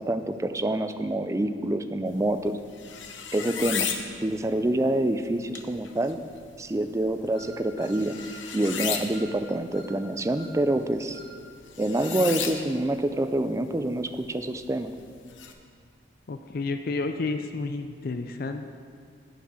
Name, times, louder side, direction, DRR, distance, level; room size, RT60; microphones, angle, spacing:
voice 1, 0.0-2.6 3.3-3.9 4.2-6.2 6.6-8.2 8.5-11.2 11.8-14.9, right 1 dB, 15° right, 9 dB, 0.4 m, -27 dB
sound 1, 2.1-15.5, left 7 dB, 80° left, 0.8 m, -37 dB
sound 2, 7.3-8.8 9.1-9.4 9.7-10.0 10.3-10.6 11.1-11.4 12.0-12.2, right 1 dB, 25° left, 1.2 m, -48 dB
voice 2, 16.3-18.7, left 3 dB, 50° left, 7 dB, 0.4 m, -31 dB
9.5 x 6.8 x 6.3 m, 2.1 s
head